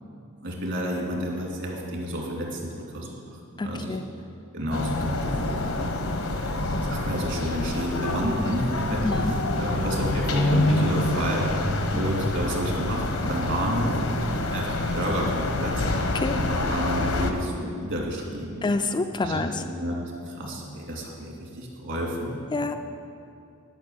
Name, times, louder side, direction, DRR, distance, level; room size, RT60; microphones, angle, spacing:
voice 1, 0.4-3.9 4.5-5.5 6.2-9.0 9.6-11.5 11.9-15.8 16.3-18.6 19.2-20.0 20.3-22.4, equal, 60° right, -2 dB, 2.6 m, -30 dB
voice 2, 3.6-4.0 9.0-9.8 11.9-12.1 14.3-14.5 16.1-16.4 18.6-19.6 22.5-22.8, left 3 dB, 20° left, 6 dB, 0.4 m, -28 dB
sound 1, 4.7-17.3, left 2 dB, 75° left, 1.0 m, -27 dB
11.0 x 6.0 x 8.6 m, 2.5 s
head